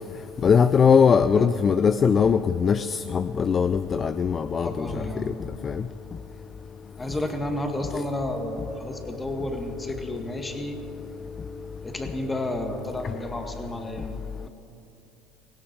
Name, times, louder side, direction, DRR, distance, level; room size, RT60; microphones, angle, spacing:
voice 1, 0.4-2.9 3.1-4.7 5.6-5.7, left 6 dB, 35° left, 13 dB, 0.4 m, -20 dB
voice 2, 4.6-5.3 7.0-10.8 11.8-14.2 14.4-14.5, left 1 dB, 15° left, 5 dB, 1.9 m, -31 dB
17.5 x 16.5 x 4.7 m, 2.8 s
supercardioid pair, 90°, 0 cm